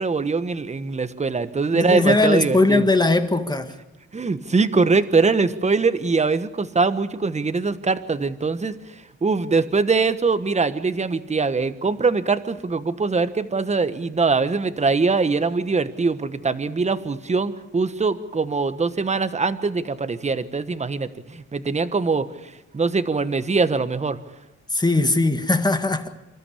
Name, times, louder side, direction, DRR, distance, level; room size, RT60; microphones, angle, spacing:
voice 1, 0.0-2.8 4.1-8.7 9.2-22.3 22.7-24.2, right 4 dB, 25° right, 1.3 m, -22 dB
voice 2, 1.7-3.7 24.7-26.1, left 2 dB, 15° left, 1.8 m, -19 dB
27.0 x 13.5 x 8.5 m
cardioid pair, 90°, 30 cm